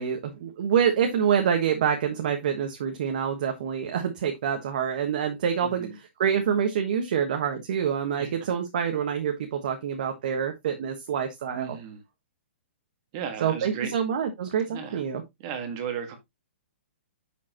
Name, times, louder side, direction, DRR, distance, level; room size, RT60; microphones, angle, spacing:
voice 1, 0.0-5.9 6.2-11.8 13.4-15.2, right 8 dB, 40° right, 1.3 m, -26 dB
voice 2, 5.6-6.0 8.2-8.3 11.5-12.0 13.1-13.9 14.6-15.0 15.4-16.2, right 7 dB, 25° right, 1.7 m, -35 dB
7.9 x 6.7 x 2.9 m
hypercardioid pair, 175°, 7 cm